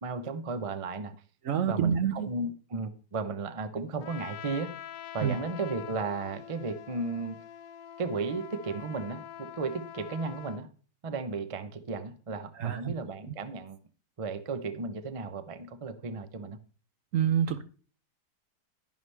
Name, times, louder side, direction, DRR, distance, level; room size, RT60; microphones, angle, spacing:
voice 1, 0.0-1.1 1.7-4.7 5.1-7.4 8.0-10.7 11.0-13.8 14.2-16.6, right 3 dB, 35° right, 0.5 m, -34 dB
voice 2, 1.4-2.3 5.2-5.3 12.5-12.9 13.3-13.4 17.1-17.6, right 8 dB, 65° right, 0.9 m, -27 dB
Trumpet, 4.0-10.6, left 10 dB, 70° left, 1.0 m, -45 dB
11.0 x 10.5 x 3.3 m
omnidirectional pair, 1.7 m